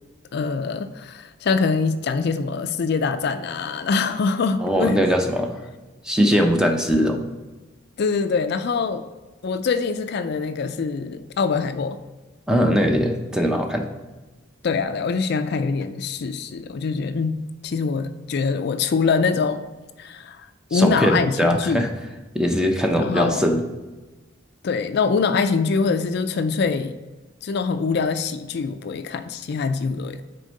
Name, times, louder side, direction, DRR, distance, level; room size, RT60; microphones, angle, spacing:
voice 1, 0.3-5.1 8.0-9.1 9.4-12.0 14.6-17.4 17.6-19.6 20.0-21.8 23.0-23.4 24.6-26.9 27.4-30.2, left 4 dB, 55° left, 10 dB, 0.4 m, -24 dB
voice 2, 4.6-5.6 6.0-7.2 12.5-13.9 20.7-21.9 22.3-23.6, equal, 5° right, 3 dB, 0.6 m, -20 dB
6.4 x 4.4 x 5.1 m, 1.2 s
head